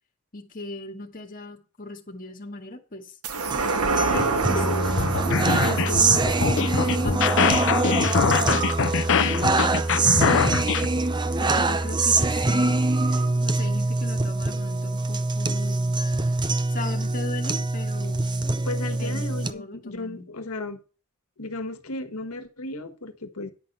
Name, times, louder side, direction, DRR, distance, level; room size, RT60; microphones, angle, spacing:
voice 1, 0.3-3.1 4.1-5.1 5.6-6.5 7.0-10.7 11.4-12.8 13.1-16.0 16.7-18.5 19.0-20.3, left 2 dB, 40° left, 1.9 m, -38 dB
sound 1, 3.2-10.0 10.4-10.5, right 3 dB, 85° right, 1.4 m, -29 dB
sound 2, 3.5-19.5, right 3 dB, 20° right, 0.6 m, -24 dB
voice 2, 4.5-4.9 18.6-20.8 21.4-23.5, left 2 dB, 85° left, 1.5 m, -34 dB
sound 3, 4.9-10.9, left 6 dB, 60° left, 0.7 m, -23 dB
10.5 x 5.5 x 6.7 m
head